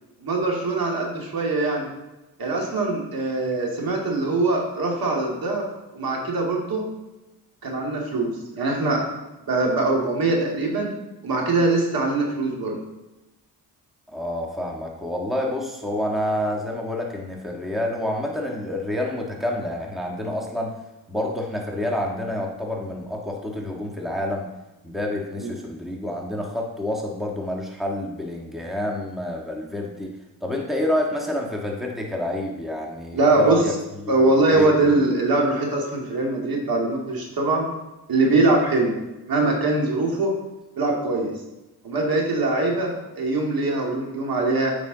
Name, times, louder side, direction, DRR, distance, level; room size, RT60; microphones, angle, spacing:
voice 1, 0.2-1.9 2.4-5.7 5.9-6.8 7.6-9.1 9.5-10.9 11.2-12.8 25.4-25.5 33.1-33.6 34.1-37.7 38.1-38.9 39.3-40.3 40.8-41.3 41.8-44.8, right 2 dB, 55° right, -1 dB, 2.3 m, -22 dB
voice 2, 14.1-20.7 21.1-24.5 24.8-30.1 30.4-33.7 34.2-35.0, left 1 dB, ahead, 0 dB, 1.5 m, -28 dB
9.0 x 5.2 x 4.0 m, 1.0 s
cardioid pair, 65°, 42 cm